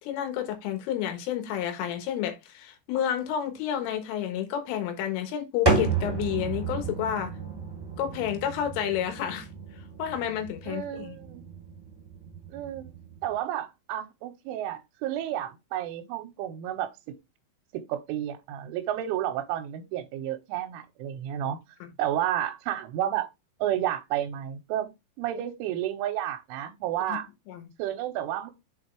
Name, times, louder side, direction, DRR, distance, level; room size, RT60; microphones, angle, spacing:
voice 1, 0.0-7.3 8.0-9.5 10.0-11.2 21.8-21.9 27.1-27.2 27.5-27.7, left 10 dB, 90° left, 3.9 m, -30 dB
sound 1, 5.6-13.4, right 3 dB, 30° right, 0.4 m, -32 dB
voice 2, 10.7-11.4 12.5-12.9 13.2-16.9 17.7-21.6 22.0-23.3 23.6-24.9 25.2-27.3 27.8-28.5, right 11 dB, 90° right, 3.2 m, -31 dB
7.5 x 4.4 x 3.2 m
omnidirectional pair, 5.6 m